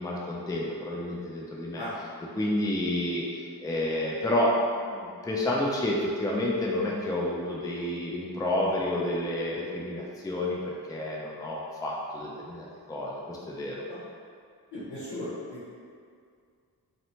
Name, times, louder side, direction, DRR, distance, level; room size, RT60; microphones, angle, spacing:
voice 1, 0.0-1.8 2.3-3.2 3.6-4.5 4.9-13.8, left 1 dB, 10° left, -3 dB, 0.4 m, -30 dB
voice 2, 14.7-15.7, left 1 dB, 85° left, -11 dB, 0.7 m, -37 dB
2.7 x 2.1 x 2.7 m, 2.2 s
cardioid pair, 40°, 40 cm